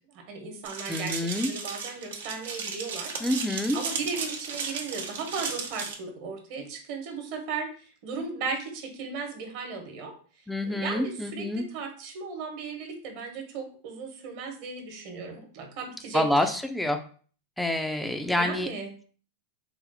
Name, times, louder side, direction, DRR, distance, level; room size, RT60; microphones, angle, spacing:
voice 1, 0.1-3.2 3.7-10.1 10.7-16.6 18.3-18.9, right 4 dB, 55° right, 4 dB, 1.1 m, -36 dB
sound 1, 0.6-5.9, right 5 dB, 80° right, 0.8 m, -35 dB
voice 2, 0.9-1.5 3.2-3.8 10.5-11.6 16.1-17.0 17.6-18.7, left 1 dB, 5° left, 6 dB, 0.4 m, -27 dB
4.1 x 2.0 x 4.0 m, 0.42 s
hypercardioid pair, 115°, 0 cm